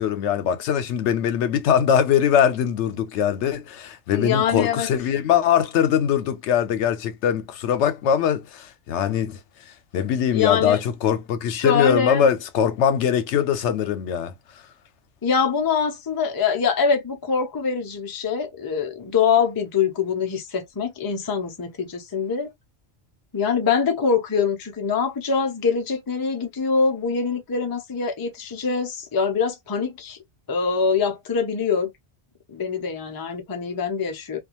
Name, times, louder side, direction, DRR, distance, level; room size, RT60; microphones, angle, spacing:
voice 1, 0.0-9.4 9.9-14.3, left 8 dB, 80° left, 0.9 m, -22 dB
voice 2, 4.1-4.9 10.3-10.8 11.5-12.3 15.2-22.5 23.3-30.2 30.5-31.9 32.5-34.4, left 6 dB, 40° left, 0.3 m, -24 dB
2.5 x 2.2 x 2.8 m
omnidirectional pair, 1.2 m